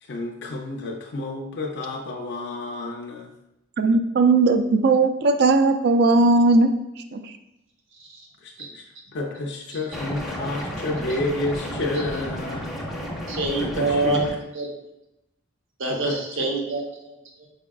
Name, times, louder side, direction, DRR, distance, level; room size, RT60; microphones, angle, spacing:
voice 1, 0.0-3.3 8.4-12.7 13.6-14.3 15.8-16.2, left 2 dB, 55° left, 0 dB, 0.4 m, -30 dB
voice 2, 3.8-6.7 7.1-7.3, right 3 dB, 50° right, 8 dB, 0.3 m, -18 dB
sound 1, 9.9-14.3, equal, ahead, 0.6 m, -32 dB
voice 3, 13.3-14.3 14.5-14.7 15.8-17.5, right 3 dB, 70° right, 0 dB, 0.9 m, -26 dB
5.2 x 3.5 x 2.3 m, 0.87 s
head